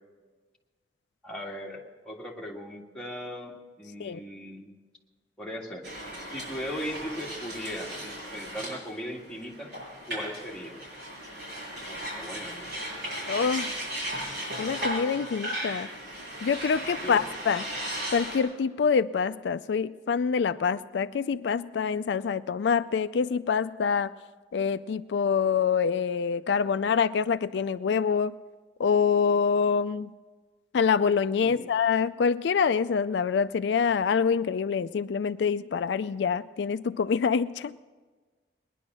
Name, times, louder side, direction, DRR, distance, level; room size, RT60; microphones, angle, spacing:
voice 1, 1.2-4.8 5.4-5.9 6.3-9.7 10.1-10.7 11.9-12.7 17.0-17.2 31.4-31.7, equal, 5° left, -4 dB, 1.9 m, -38 dB
sound 1, 5.8-18.4, equal, 65° right, 6.4 m, -36 dB
voice 2, 13.3-13.7 14.6-15.9 16.4-17.7 18.1-24.1 24.5-28.3 28.8-30.1 30.7-37.8, left 6 dB, 80° left, 13 dB, 0.4 m, -26 dB
19.5 x 11.0 x 6.2 m, 1.4 s
head